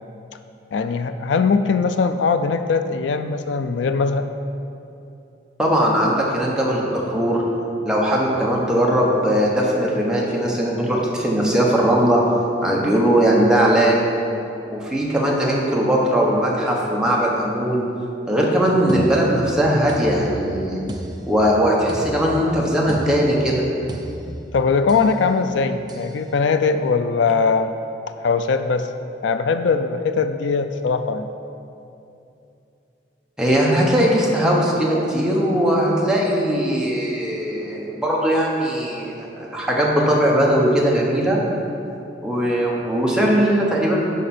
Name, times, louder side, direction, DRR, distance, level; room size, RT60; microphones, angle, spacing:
voice 1, 0.7-4.3 24.5-27.7 28.2-28.9 29.2-31.3, left 4 dB, 70° left, 9 dB, 0.4 m, -20 dB
voice 2, 5.6-7.4 7.8-12.2 12.6-14.0 14.7-17.8 18.3-20.8 21.3-23.6 33.4-41.4 42.2-44.0, equal, 5° right, -4 dB, 1.1 m, -19 dB
sound 1, 18.9-25.2 25.9-26.2, right 1 dB, 25° right, 0.5 m, -35 dB
9.9 x 5.2 x 4.3 m, 2.7 s
head